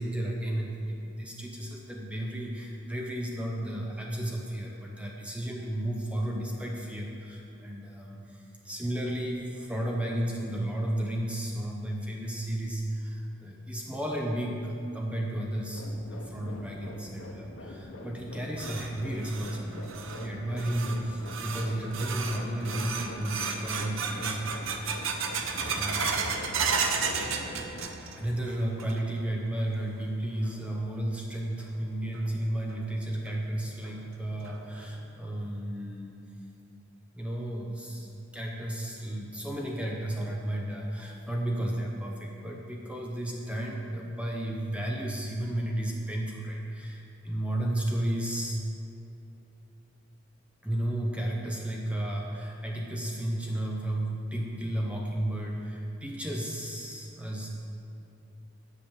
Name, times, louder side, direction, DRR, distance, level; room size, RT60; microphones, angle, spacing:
voice 1, 0.0-24.4 24.8-25.3 25.6-26.2 28.2-36.2 37.1-48.6 50.6-57.5, right 1 dB, 5° right, -1 dB, 0.7 m, -33 dB
sound 1, 15.7-27.9, left 1 dB, 80° left, 1.0 m, -44 dB
sound 2, 18.2-28.3 28.6-29.2 29.6-29.7 30.4-30.5 32.1-32.2 32.7-32.8 33.3-33.4 33.8-33.9 34.5-34.8, right 5 dB, 75° right, 0.7 m, -33 dB
7.9 x 5.2 x 7.2 m, 2.8 s
head